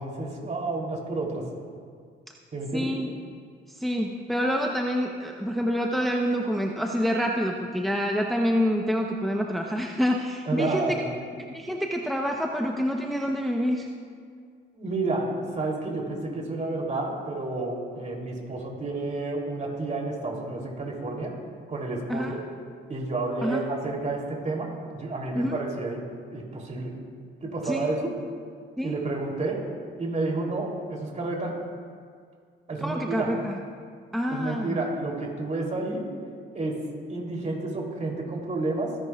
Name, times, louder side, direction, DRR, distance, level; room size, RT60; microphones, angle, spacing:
voice 1, 0.0-1.4 2.5-2.9 10.4-11.0 14.7-21.3 21.7-22.4 22.9-26.0 26.3-26.9 27.4-28.1 28.8-29.6 30.0-31.6 32.7-33.3 34.3-36.1 36.5-36.8 37.1-39.0, right 2 dB, 35° right, -1 dB, 3.1 m, -30 dB
voice 2, 2.7-3.1 3.7-11.0 11.5-13.9 22.1-22.4 23.4-23.7 25.3-25.6 27.6-27.9 28.8-28.9 32.8-33.6 34.1-34.8, equal, ahead, 1 dB, 0.8 m, -27 dB
26.0 x 10.5 x 2.4 m, 2.1 s
cardioid pair, 90°, 20 cm